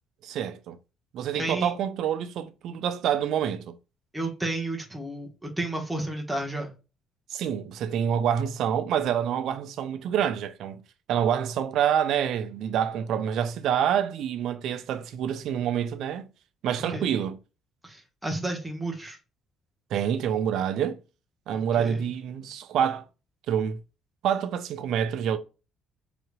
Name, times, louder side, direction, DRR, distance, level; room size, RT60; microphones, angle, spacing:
voice 1, 0.2-0.8 1.1-3.8 7.3-10.8 11.1-16.3 16.6-17.4 19.9-21.0 21.5-23.0 23.5-23.8 24.2-25.4, right 9 dB, 60° right, 0.5 m, -27 dB
voice 2, 1.4-1.7 4.1-6.7 16.9-17.1 17.8-19.2 21.5-22.1, right 2 dB, 10° right, 1.3 m, -32 dB
4.9 x 3.2 x 2.4 m
figure-of-eight pair, 50°, 0 cm